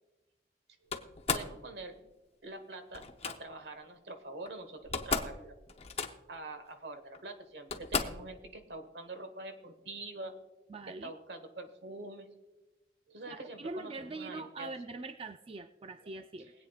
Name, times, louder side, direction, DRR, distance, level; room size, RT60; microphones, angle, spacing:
Slam, 0.9-1.6 2.9-3.4 4.5-4.6 4.8-5.4 5.7-6.4 7.1-7.2 7.7-8.3, left 5 dB, 35° left, 0.7 m, -34 dB
voice 1, 1.3-2.1 2.4-5.5 6.3-10.3 11.0-12.3 13.1-14.7, right 2 dB, 75° right, 6 dB, 1.3 m, -45 dB
voice 2, 10.7-11.1 13.3-16.5, right 3 dB, 30° right, 8 dB, 0.3 m, -43 dB
23.0 x 8.6 x 2.4 m, 1.1 s
head